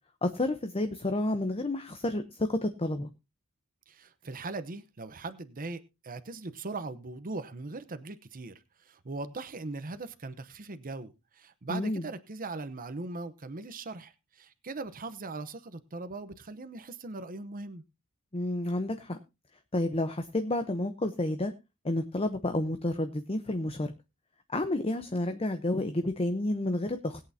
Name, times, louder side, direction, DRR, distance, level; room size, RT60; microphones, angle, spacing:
voice 1, 0.2-3.1 11.7-12.0 18.3-19.2 19.7-21.5 21.8-23.9 24.5-27.2, left 1 dB, 25° left, 0.8 m, -30 dB
voice 2, 3.9-17.8, right 3 dB, 40° right, 0.9 m, -40 dB
20.5 x 8.6 x 2.8 m
head